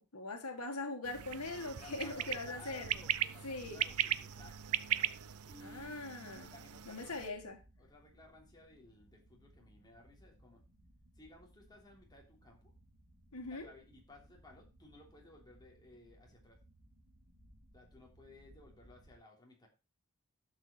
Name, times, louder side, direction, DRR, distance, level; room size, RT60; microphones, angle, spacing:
voice 1, 0.0-2.9 3.4-3.8 5.6-6.5 6.9-7.6 13.3-13.7, left 2 dB, 90° left, 4 dB, 1.9 m, -41 dB
sound 1, 1.0-7.3, right 12 dB, 80° right, 0.6 m, -38 dB
sound 2, 1.3-19.2, equal, 55° right, 3.5 m, -64 dB
voice 2, 1.5-4.8 5.4-7.2 7.8-10.6 11.2-12.7 13.5-16.6 17.7-19.7, left 2 dB, 20° left, -1 dB, 3.2 m, -58 dB
12.0 x 6.5 x 4.4 m, 0.30 s
head